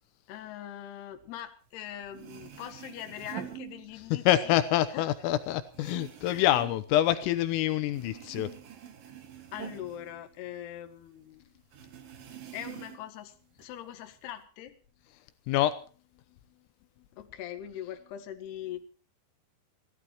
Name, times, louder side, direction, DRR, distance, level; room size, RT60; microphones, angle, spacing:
voice 1, 0.3-4.6 4.9-5.1 6.3-6.5 9.5-11.5 12.5-14.8 17.2-18.9, left 11 dB, 60° left, 8 dB, 3.4 m, -42 dB
sound 1, 1.8-1.9 2.1-4.3 4.7-7.6 7.9-10.9 11.2-11.3 11.7-13.2 13.6-14.4, right 10 dB, 55° right, 3.2 m, -46 dB
voice 2, 4.3-8.5 15.5-15.8, left 13 dB, 85° left, 12 dB, 3.6 m, -26 dB
26.0 x 15.5 x 3.0 m, 0.36 s
omnidirectional pair, 5.9 m